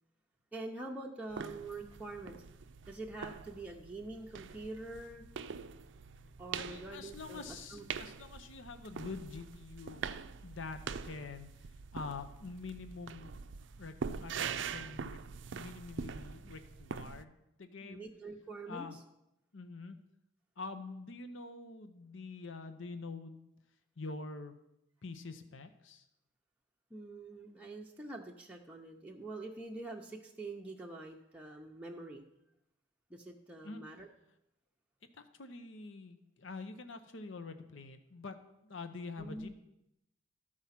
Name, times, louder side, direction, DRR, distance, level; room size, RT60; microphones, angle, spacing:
voice 1, 0.5-2.4 2.9-5.2 6.4-7.8 17.8-19.0 26.9-32.2 33.1-34.1 39.2-39.6, right 2 dB, 5° right, -1 dB, 0.7 m, -45 dB
sound 1, 1.3-17.2, right 6 dB, 70° right, 0.4 m, -44 dB
voice 2, 6.6-10.0 10.4-13.3 13.8-15.2 15.5-18.1 18.7-19.0 19.5-20.0 20.6-23.5 24.0-24.5 25.0-26.1 33.6-33.8 35.1-38.4 38.6-39.5, left 3 dB, 80° left, 8 dB, 0.7 m, -46 dB
13.5 x 4.8 x 5.8 m, 0.85 s
head